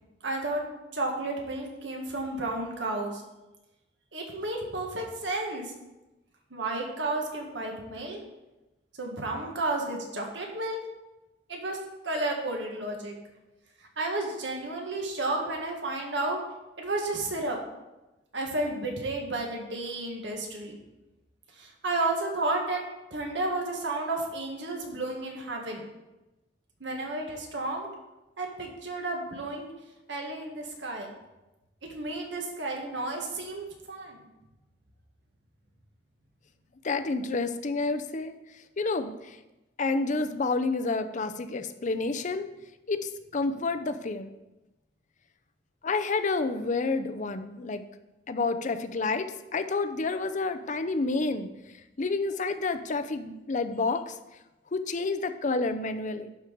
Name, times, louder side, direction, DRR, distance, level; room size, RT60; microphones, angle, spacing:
voice 1, 0.2-0.7 0.9-3.2 4.1-5.7 6.5-8.2 9.0-10.8 11.5-11.8 12.0-13.2 14.0-16.4 16.8-17.6 18.3-20.8 21.5-22.8 23.1-25.8 26.8-27.9 28.4-29.7 30.1-31.1 31.9-34.3, right 2 dB, 75° right, 1 dB, 1.6 m, -32 dB
voice 2, 36.8-38.3 38.8-39.4 39.8-42.5 42.9-44.3 45.8-47.8 48.3-51.5 52.0-54.2 54.7-56.3, left 3 dB, 45° left, 9 dB, 0.6 m, -29 dB
12.0 x 4.6 x 5.1 m, 1.0 s
head